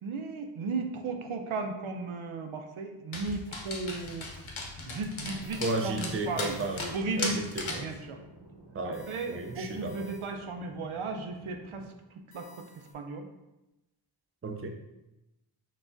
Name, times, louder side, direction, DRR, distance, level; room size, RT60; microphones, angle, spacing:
voice 1, 0.0-4.4 4.9-6.6 6.9-7.4 7.8-8.2 8.8-11.9 12.3-12.6 12.9-13.3, right 3 dB, 75° right, 5 dB, 0.6 m, -35 dB
Dog, 3.1-7.9, left 3 dB, 70° left, 0.8 m, -38 dB
sound 1, 5.3-11.9, right 1 dB, 55° right, 1.0 m, -53 dB
sound 2, 5.4-7.1 8.9-10.6 12.3-12.9, left 3 dB, 25° left, 0.9 m, -57 dB
voice 2, 5.6-7.9 8.7-10.1 14.4-14.7, right 2 dB, 30° right, 4 dB, 0.4 m, -34 dB
5.9 x 2.3 x 2.5 m, 0.96 s
wide cardioid pair, 65°, 49 cm